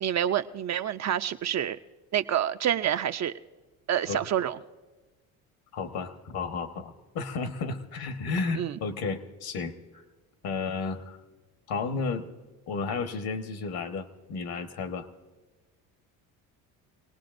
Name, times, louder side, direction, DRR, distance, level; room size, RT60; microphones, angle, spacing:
voice 1, 0.0-1.8 2.1-3.3 3.9-4.6 8.6-8.8, right 10 dB, 40° right, 9 dB, 0.6 m, -27 dB
voice 2, 5.7-10.0 10.4-11.2 11.7-12.3 12.7-15.1, left 4 dB, 60° left, 8 dB, 1.4 m, -33 dB
25.5 x 18.5 x 2.6 m, 1.2 s
hypercardioid pair, 65°, 41 cm